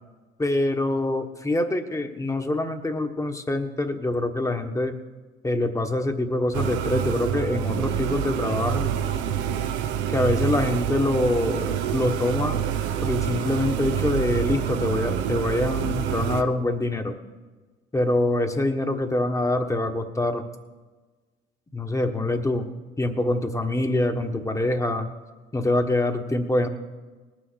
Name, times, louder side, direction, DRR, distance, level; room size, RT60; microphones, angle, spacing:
voice 1, 0.4-5.0 5.4-8.9 10.1-12.6 13.0-17.2 17.9-20.4 21.7-22.7 23.0-25.1 25.5-26.7, left 1 dB, 15° left, 5 dB, 1.4 m, -25 dB
sound 1, 6.5-16.4, right 9 dB, 85° right, 0.8 m, -27 dB
19.0 x 6.4 x 8.1 m, 1.3 s
supercardioid pair, 80°, 19 cm